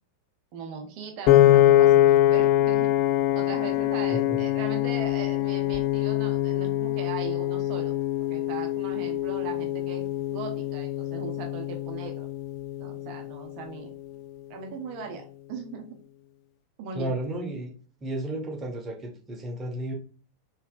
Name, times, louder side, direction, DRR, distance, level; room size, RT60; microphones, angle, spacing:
voice 1, 0.5-2.9 3.3-7.9 8.2-12.3 12.8-13.9 14.5-16.0 16.8-17.1, right 5 dB, 45° right, 3 dB, 0.7 m, -39 dB
Piano, 1.3-13.5, left 13 dB, 45° left, 0.3 m, -23 dB
voice 2, 4.1-4.5 16.9-17.7 18.0-19.9, right 1 dB, 20° right, 0 dB, 1.3 m, -33 dB
4.3 x 3.4 x 2.5 m, 0.40 s
figure-of-eight pair, 90°, 0 cm